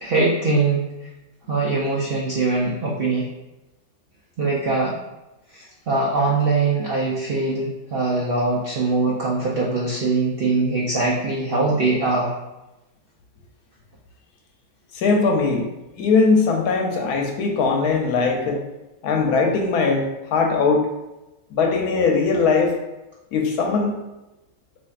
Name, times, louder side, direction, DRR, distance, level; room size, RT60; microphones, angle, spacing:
voice 1, 0.0-0.8 1.5-3.3 4.4-5.0 5.5-12.3, right 3 dB, 90° right, -3 dB, 0.5 m, -22 dB
voice 2, 14.9-15.6 16.0-18.6 19.0-20.9 21.5-22.7 23.3-23.9, left 4 dB, 80° left, 1 dB, 1.1 m, -20 dB
4.2 x 2.9 x 2.4 m, 0.99 s
omnidirectional pair, 1.7 m